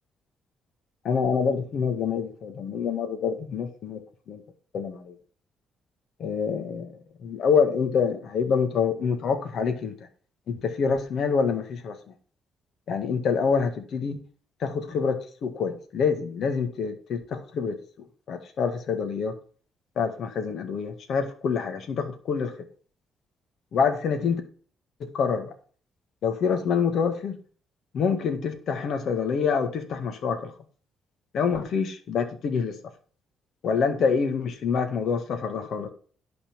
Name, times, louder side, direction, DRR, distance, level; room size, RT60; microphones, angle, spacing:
voice 1, 1.0-4.0 4.3-4.4 4.7-5.1 6.2-9.9 10.5-11.9 12.9-14.2 14.6-17.8 18.3-19.3 19.9-22.5 23.7-24.4 25.0-25.5 26.2-27.4 27.9-30.5 31.3-32.7 33.6-35.9, left 6 dB, 65° left, 6 dB, 1.7 m, -26 dB
11.0 x 4.4 x 7.2 m, 0.43 s
cardioid pair, 90°, 0 cm